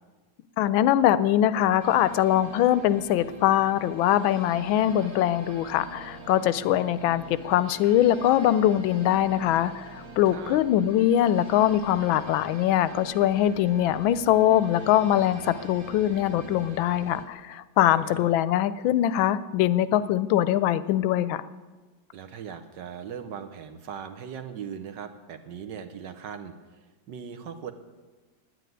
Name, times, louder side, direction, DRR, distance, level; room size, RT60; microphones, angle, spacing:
voice 1, 0.6-21.4, left 12 dB, 80° left, 15 dB, 1.3 m, -22 dB
sound 1, 1.8-17.3, right 3 dB, 85° right, 2.7 m, -44 dB
voice 2, 10.3-10.6 17.9-18.3 22.1-27.7, right 7 dB, 65° right, 9 dB, 1.4 m, -39 dB
9.9 x 9.2 x 9.3 m, 1.3 s
omnidirectional pair, 2.2 m